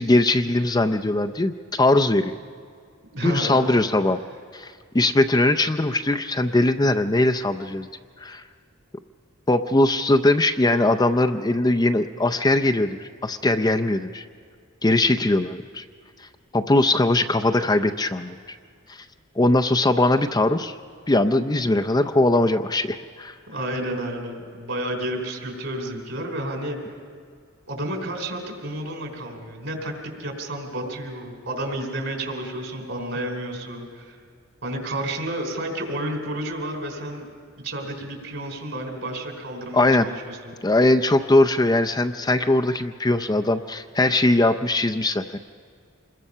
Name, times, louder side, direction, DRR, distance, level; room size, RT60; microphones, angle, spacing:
voice 1, 0.0-2.3 3.2-4.2 4.5-7.9 8.2-8.4 9.5-14.2 14.8-15.8 16.5-18.4 18.9-19.0 19.4-20.7 21.1-23.3 39.7-40.1 40.6-45.4, left 2 dB, 20° left, 8 dB, 0.5 m, -20 dB
voice 2, 3.1-3.6 23.5-26.8 27.7-34.2 34.6-37.2 37.6-40.6, right 1 dB, 60° right, 3 dB, 3.9 m, -31 dB
26.5 x 21.5 x 5.5 m, 2.2 s
head